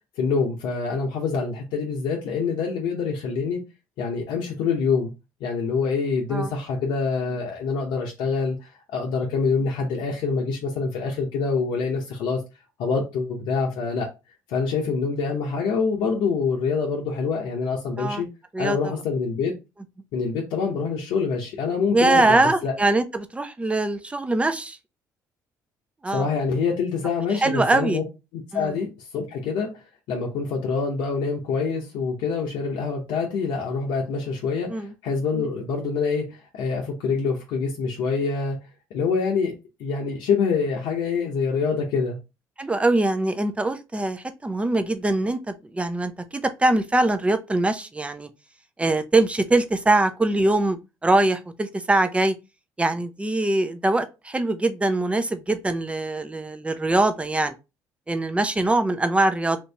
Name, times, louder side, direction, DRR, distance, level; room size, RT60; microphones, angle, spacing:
voice 1, 0.2-3.6 4.0-5.1 5.4-12.4 12.8-14.1 14.5-18.3 18.6-19.5 20.1-22.7 26.1-28.0 28.3-29.7 30.1-38.6 38.9-39.5 39.8-42.2, left 5 dB, 80° left, 0.8 m, -25 dB
voice 2, 21.9-24.8 26.0-26.3 27.4-28.0 28.5-28.7 34.7-34.9 42.6-48.3 48.8-52.3 52.8-57.5 58.1-59.6, right 2 dB, 15° right, 0.6 m, -22 dB
3.0 x 2.6 x 3.3 m
supercardioid pair, 70°, 8 cm